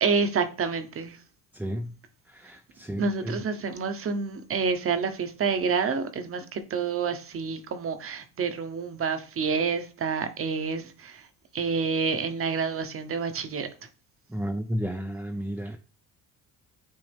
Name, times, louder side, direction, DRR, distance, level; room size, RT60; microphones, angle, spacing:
voice 1, 0.0-1.2 3.0-11.3 11.5-13.7, right 5 dB, 40° right, 1.0 m, -28 dB
voice 2, 1.5-1.9 2.3-3.3 14.3-15.8, equal, 5° right, 0.5 m, -32 dB
8.9 x 3.4 x 3.5 m
cardioid pair, 125°, 36 cm